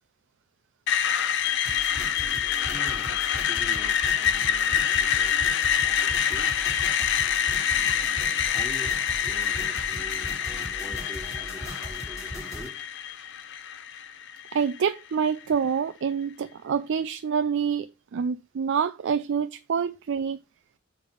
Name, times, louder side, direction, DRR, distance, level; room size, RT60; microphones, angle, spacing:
Screech, 0.9-14.8, left 8 dB, 60° left, 0.7 m, -26 dB
sound 1, 1.7-12.7, equal, 15° left, 2.6 m, -40 dB
voice 1, 2.6-6.5 7.0-7.5 8.5-12.8, right 1 dB, 5° right, 2.9 m, -45 dB
voice 2, 14.5-20.4, right 7 dB, 60° right, 0.4 m, -27 dB
7.5 x 3.4 x 5.3 m
head